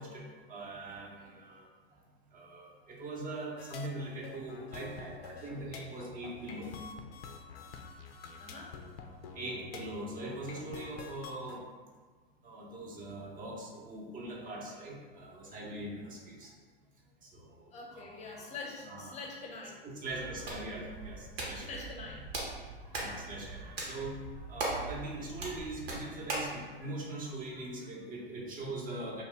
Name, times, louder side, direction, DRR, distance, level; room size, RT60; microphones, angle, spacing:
voice 1, 0.0-1.7 1.9-2.0 2.3-6.8 9.4-11.7 12.4-16.5 17.2-18.5 18.8-19.2 19.8-21.9 22.8-29.2, right 2 dB, 25° right, -2 dB, 0.7 m, -42 dB
sound 1, 3.6-11.6, left 5 dB, 75° left, 0.5 m, -47 dB
voice 2, 8.4-8.8 9.4-9.7 17.3-17.4 17.7-19.8 20.1-20.3 21.6-22.3 23.0-23.3, left 3 dB, 20° left, -1 dB, 0.6 m, -45 dB
Hands, 20.1-26.6, right 2 dB, 80° right, 0.9 m, -40 dB
2.7 x 2.2 x 3.4 m, 1.4 s
hypercardioid pair, 95°, 31 cm